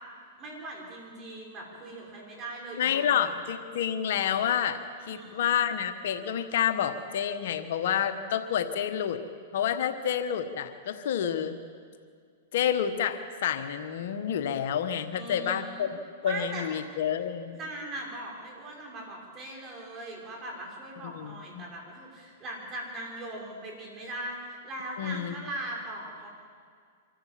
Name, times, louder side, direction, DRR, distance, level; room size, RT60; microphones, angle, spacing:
voice 1, 0.4-3.3 5.0-5.4 15.1-15.9 16.2-16.7 17.5-26.3, right 1 dB, 30° right, -1 dB, 5.6 m, -40 dB
voice 2, 2.8-4.8 5.1-9.2 9.5-11.6 12.5-15.9 16.2-17.6 21.0-21.6 25.0-25.4, left 9 dB, 65° left, 8 dB, 1.2 m, -29 dB
25.0 x 14.5 x 7.5 m, 2.1 s
hypercardioid pair, 130°, 0 cm